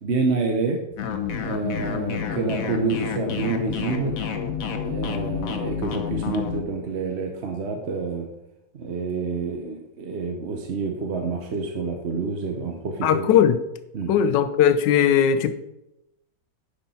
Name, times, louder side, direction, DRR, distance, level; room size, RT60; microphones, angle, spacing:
voice 1, 0.0-0.8 1.4-4.2 4.9-8.3 8.7-13.3 13.9-14.1, right 4 dB, 50° right, 3 dB, 0.9 m, -28 dB
sound 1, 1.0-6.6, left 7 dB, 55° left, 1.1 m, -29 dB
voice 2, 13.0-13.6 14.1-15.5, left 9 dB, 75° left, 12 dB, 1.3 m, -18 dB
10.0 x 6.1 x 4.2 m, 0.89 s
omnidirectional pair, 2.0 m